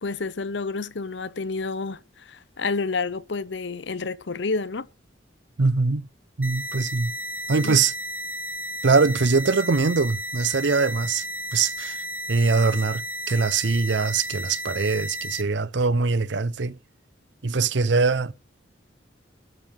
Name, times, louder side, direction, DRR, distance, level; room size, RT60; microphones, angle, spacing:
voice 1, 0.0-4.9 7.6-7.8, left 4 dB, 75° left, 0.8 m, -29 dB
voice 2, 5.6-6.0 6.4-7.2 7.5-7.9 8.8-11.2 11.5-12.0 12.3-13.0 13.3-16.8 17.4-18.3, right 4 dB, 70° right, 0.7 m, -22 dB
sound 1, 6.4-15.4, equal, 10° right, 0.6 m, -33 dB
12.5 x 7.5 x 6.6 m
head